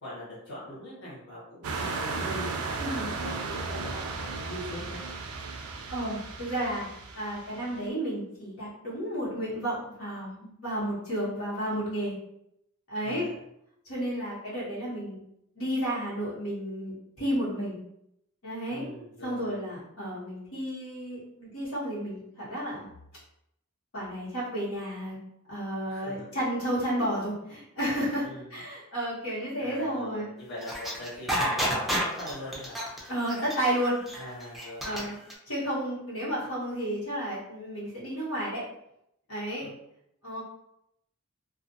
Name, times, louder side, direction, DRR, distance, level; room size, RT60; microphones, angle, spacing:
voice 1, 0.0-5.0 13.0-13.3 18.7-19.6 25.9-26.3 28.2-28.7 29.6-32.8 34.1-35.1 39.6-39.7, equal, 55° left, -8 dB, 1.1 m, -42 dB
sound 1, 1.6-7.8, right 4 dB, 85° right, 0.4 m, -35 dB
voice 2, 2.8-3.1 5.9-6.9 7.1-12.2 12.9-13.3 13.8-15.2 15.5-17.8 18.4-18.9 19.2-22.9 23.9-25.2 25.5-30.3 33.1-34.0 34.8-35.1 35.5-38.6 39.3-39.7 40.2-40.4, equal, 80° left, -8 dB, 1.3 m, -32 dB
sound 2, 30.6-35.3, equal, ahead, 0.4 m, -30 dB
2.5 x 2.4 x 2.6 m, 0.79 s
head